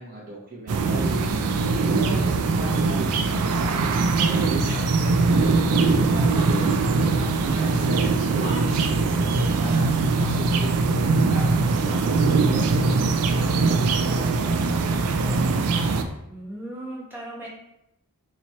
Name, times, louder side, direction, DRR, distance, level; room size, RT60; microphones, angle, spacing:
voice 1, 0.0-11.5 11.9-15.5, right 1 dB, 40° right, -4 dB, 0.8 m, -37 dB
sound 1, 0.7-16.0, right 3 dB, 75° right, 0.4 m, -22 dB
Female speech woman speaking / Yell, 4.2-5.4 5.7-7.1 7.5-9.3, left 1 dB, 40° left, 1.0 m, -43 dB
voice 2, 16.2-17.5, right 1 dB, 10° right, -6 dB, 1.0 m, -37 dB
3.0 x 2.9 x 4.1 m, 0.84 s
head